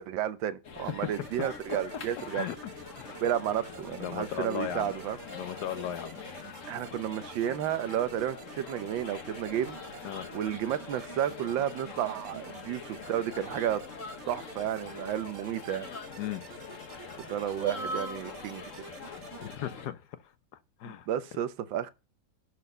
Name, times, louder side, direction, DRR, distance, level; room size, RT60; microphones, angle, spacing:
voice 1, 0.0-2.5 3.2-5.2 6.7-10.1 10.3-13.8 14.3-15.9 17.2-19.0 20.8-21.9, right 10 dB, 90° right, 1.5 m, -32 dB
sound 1, 0.6-19.9, left 4 dB, 50° left, 1.4 m, -43 dB
sound 2, 1.1-19.6, right 7 dB, 50° right, 0.9 m, -49 dB
voice 2, 2.4-3.1 4.0-4.9 5.3-6.2 10.0-10.3 16.2-16.4 19.4-20.3 20.8-21.1, left 11 dB, 70° left, 1.2 m, -37 dB
11.0 x 4.2 x 6.6 m
omnidirectional pair, 2.0 m